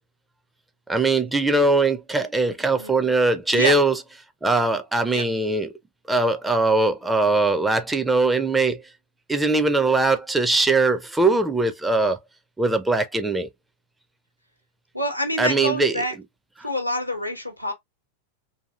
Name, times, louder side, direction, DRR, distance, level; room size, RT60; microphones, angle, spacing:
voice 1, 0.9-3.9 4.4-5.7 6.1-8.8 9.3-12.2 12.6-13.5 15.4-16.0, right 3 dB, 10° right, 0.4 m, -21 dB
voice 2, 2.8-3.1 3.5-3.8 5.1-5.2 14.9-16.2 16.6-17.7, equal, 90° left, 0.6 m, -27 dB
2.7 x 2.5 x 2.2 m
figure-of-eight pair, 90°, 0 cm